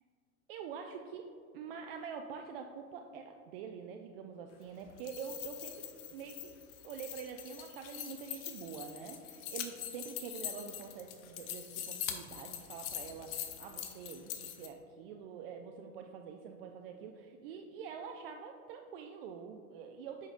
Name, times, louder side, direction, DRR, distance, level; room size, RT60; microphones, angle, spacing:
voice 1, 0.5-20.3, right 6 dB, 45° right, 4 dB, 0.4 m, -46 dB
sound 1, 4.9-14.7, left 10 dB, 40° left, 0.7 m, -43 dB
8.6 x 5.2 x 2.5 m, 2.6 s
figure-of-eight pair, 90°, 44 cm